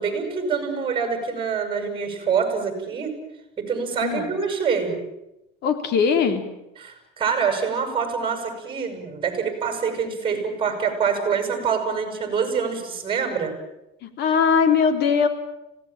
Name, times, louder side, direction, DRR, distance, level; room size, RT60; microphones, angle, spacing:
voice 1, 0.0-3.1 3.6-4.9 6.8-13.5, right 6 dB, 25° right, 5 dB, 7.9 m, -25 dB
voice 2, 5.6-6.4 14.2-15.3, left 6 dB, 55° left, 8 dB, 3.7 m, -20 dB
26.0 x 18.0 x 9.0 m, 0.90 s
supercardioid pair, 120°, 20 cm